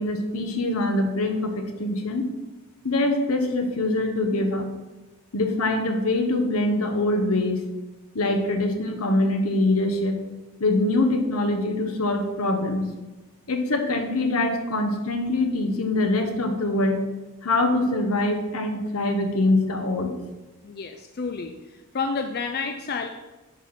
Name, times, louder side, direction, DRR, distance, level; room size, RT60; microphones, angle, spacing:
voice 1, 0.0-2.2 2.8-4.6 5.3-7.6 8.1-10.2 10.6-12.9 13.5-17.0 17.4-20.1, left 2 dB, 80° left, 5 dB, 1.1 m, -24 dB
voice 2, 20.6-21.5 21.9-23.1, left 4 dB, 45° left, 6 dB, 0.4 m, -29 dB
10.0 x 4.3 x 4.3 m, 1.2 s
head